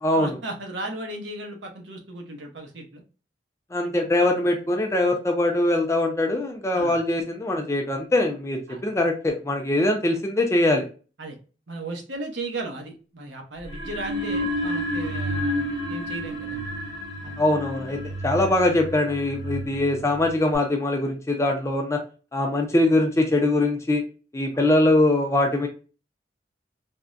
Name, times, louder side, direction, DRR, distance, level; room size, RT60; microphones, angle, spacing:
voice 1, 0.1-3.0 3.8-4.0 6.7-7.0 8.7-8.8 11.2-11.4 11.7-16.6 17.2-17.3, right 2 dB, 80° right, 2 dB, 0.8 m, -36 dB
voice 2, 3.7-10.9 17.4-22.0 22.3-24.0 24.3-25.7, left 1 dB, 15° left, 3 dB, 0.4 m, -22 dB
sound 1, 13.6-20.5, equal, 25° right, 0.7 m, -30 dB
3.4 x 2.1 x 2.4 m, 0.35 s
head